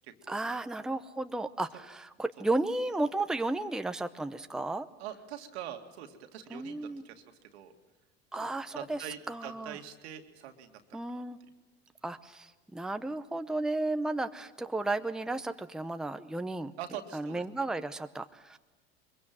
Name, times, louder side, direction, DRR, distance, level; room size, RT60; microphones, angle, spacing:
voice 1, 0.3-4.9 6.5-7.1 8.3-9.8 10.9-11.4 12.0-16.7 17.1-18.6, right 2 dB, ahead, 9 dB, 0.8 m, -33 dB
voice 2, 5.0-7.2 7.5-7.7 8.4-8.5 8.7-11.0 16.8-17.4, right 10 dB, 75° right, 6 dB, 2.2 m, -43 dB
23.0 x 22.5 x 7.6 m, 1.1 s
hypercardioid pair, 80°, 32 cm